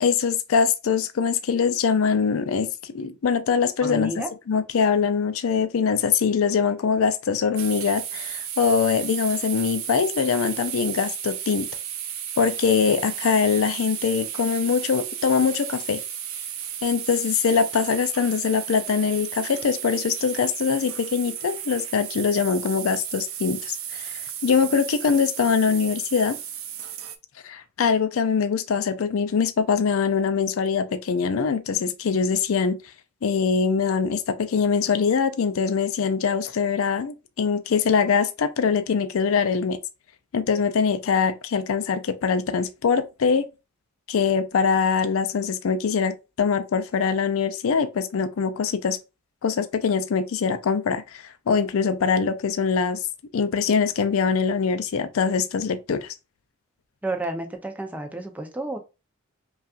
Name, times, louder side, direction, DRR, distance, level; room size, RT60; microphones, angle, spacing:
voice 1, 0.0-4.1 4.5-11.7 12.4-16.0 16.8-26.4 27.4-32.8 33.2-39.8 40.3-43.5 44.1-49.0 49.4-53.0 53.3-56.1, left 6 dB, 75° left, 0.4 m, -23 dB
voice 2, 3.8-4.3 57.0-58.8, right 2 dB, 5° right, 0.6 m, -30 dB
sound 1, 7.6-27.2, right 9 dB, 75° right, 0.5 m, -34 dB
5.4 x 2.4 x 2.4 m
head